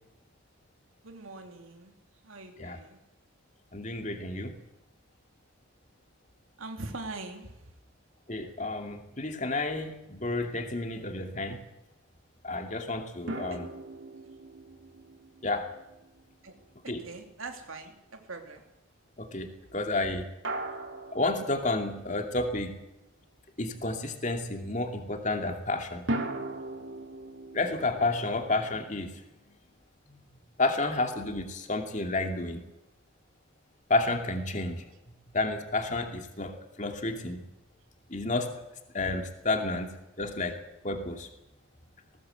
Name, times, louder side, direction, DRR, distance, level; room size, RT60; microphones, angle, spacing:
voice 1, 1.0-2.0 2.2-3.0 6.6-7.7 13.5-13.6 16.4-16.6 16.8-18.7, right 3 dB, 80° right, 4 dB, 2.9 m, -42 dB
voice 2, 3.7-4.5 8.3-11.6 12.4-13.7 15.4-15.7 16.9-17.0 19.2-20.3 21.1-22.8 23.6-26.0 27.5-29.2 30.1-30.2 30.6-32.6 33.9-34.9 35.3-37.4 38.1-38.5 38.9-40.6 40.8-41.3, left 2 dB, 35° left, 4 dB, 2.6 m, -31 dB
sound 1, 13.3-16.6 20.4-22.4 26.1-29.2, right 2 dB, 65° right, 2.6 m, -39 dB
19.5 x 18.5 x 8.0 m, 0.93 s
head